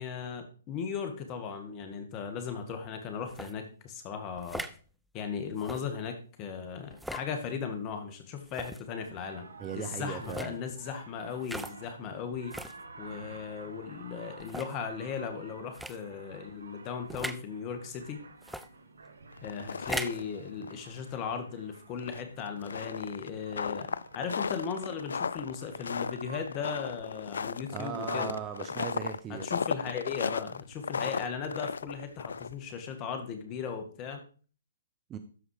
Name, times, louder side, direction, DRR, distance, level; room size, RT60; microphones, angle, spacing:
voice 1, 0.0-4.7 5.1-9.5 9.7-12.6 13.0-18.2 19.4-23.9 24.1-28.3 29.3-34.2, left 6 dB, 30° left, 6 dB, 2.1 m, -37 dB
sound 1, 3.3-3.5 4.4-4.8 5.6-5.8 6.9-7.3 8.5-8.8 10.2-10.5 11.4-11.8 12.5-12.8 13.5-13.6 14.4-14.8 15.7-16.0 17.1-17.4 18.4-18.7 19.7-20.2, right 1 dB, ahead, 0.5 m, -39 dB
sound 2, 9.0-26.4, right 3 dB, 80° right, 1.7 m, -52 dB
voice 2, 9.6-10.6 27.7-29.4 35.1-35.2, right 8 dB, 20° right, 8 dB, 0.9 m, -38 dB
sound 3, 19.3-20.4 20.6-20.7 21.1-21.2 22.0-32.7, left 5 dB, 75° left, 0.5 m, -35 dB
13.0 x 4.9 x 5.0 m, 0.39 s
hypercardioid pair, 140°, 0 cm